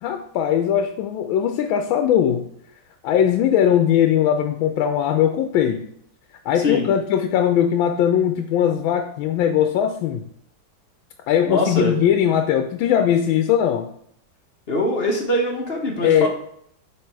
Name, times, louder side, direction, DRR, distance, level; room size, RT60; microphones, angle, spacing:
voice 1, 0.0-2.4 3.0-5.9 6.5-10.2 11.3-13.9 16.0-16.3, left 9 dB, 85° left, 7 dB, 1.4 m, -20 dB
voice 2, 6.6-6.9 11.4-11.9 14.7-16.3, left 1 dB, 40° left, 1 dB, 1.1 m, -22 dB
8.3 x 3.3 x 4.6 m, 0.68 s
omnidirectional pair, 2.1 m